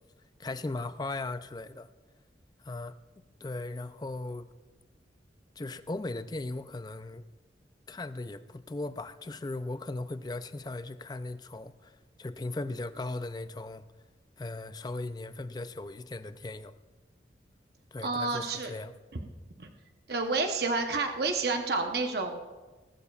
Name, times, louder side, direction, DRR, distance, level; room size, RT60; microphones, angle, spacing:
voice 1, 0.4-1.9 2.6-2.9 3.4-4.5 5.6-7.2 7.9-13.8 14.4-16.7 17.9-18.9, left 2 dB, 20° left, 0.4 m, -38 dB
voice 2, 18.0-18.7 19.6-19.7 20.1-22.4, right 3 dB, 55° right, 0.9 m, -29 dB
19.0 x 12.5 x 2.4 m
head